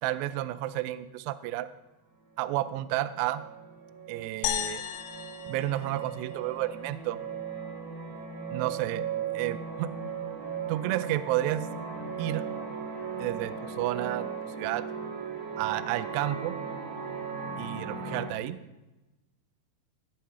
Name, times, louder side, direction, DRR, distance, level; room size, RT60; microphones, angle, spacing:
voice 1, 0.0-1.7 2.4-3.4 4.1-4.8 5.5-7.2 8.5-9.1 9.3-9.9 10.7-11.7 12.2-12.4 13.2-14.3 14.6-14.8 15.6-16.6 17.6-18.6, right 14 dB, 90° right, 14 dB, 2.4 m, -31 dB
sound 1, 2.5-2.6 2.8-18.3, right 6 dB, 65° right, 4.1 m, -37 dB
sound 2, 4.4-6.9, left 11 dB, 85° left, 2.9 m, -35 dB
16.0 x 5.7 x 5.6 m, 1.0 s
omnidirectional pair, 5.4 m